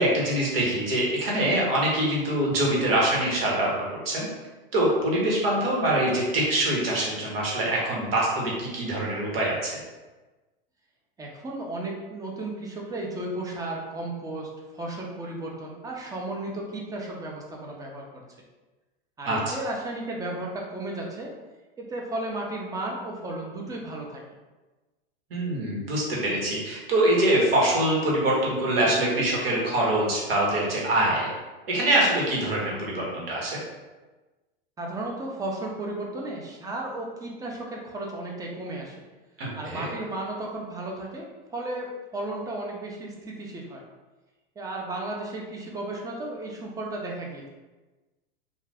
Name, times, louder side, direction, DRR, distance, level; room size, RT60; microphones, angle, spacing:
voice 1, 0.0-4.3 4.7-9.8 19.2-19.5 25.3-31.3 31.7-33.6 39.4-39.9, right 1 dB, 80° right, -4 dB, 1.2 m, -24 dB
voice 2, 11.2-18.2 19.2-21.3 21.8-24.2 34.8-39.0 39.6-41.3 41.5-43.8 44.6-47.4, right 2 dB, 10° right, -1 dB, 0.5 m, -34 dB
2.5 x 2.4 x 3.3 m, 1.2 s
hypercardioid pair, 110°, 29 cm